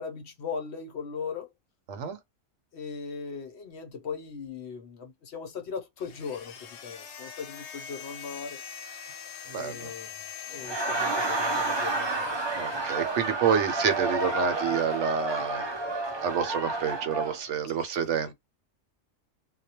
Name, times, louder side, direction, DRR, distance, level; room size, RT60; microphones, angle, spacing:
voice 1, 0.0-1.5 2.7-8.6 9.4-10.2 10.5-12.4 17.6-18.0, left 5 dB, 60° left, 0.9 m, -39 dB
sound 1, 6.0-13.3, left 8 dB, 85° left, 1.0 m, -43 dB
voice 2, 9.5-9.9 12.6-15.7 16.2-18.3, right 7 dB, 70° right, 0.9 m, -28 dB
Laughter, 10.5-17.4, right 2 dB, 35° right, 0.4 m, -30 dB
2.3 x 2.1 x 2.8 m
omnidirectional pair, 1.3 m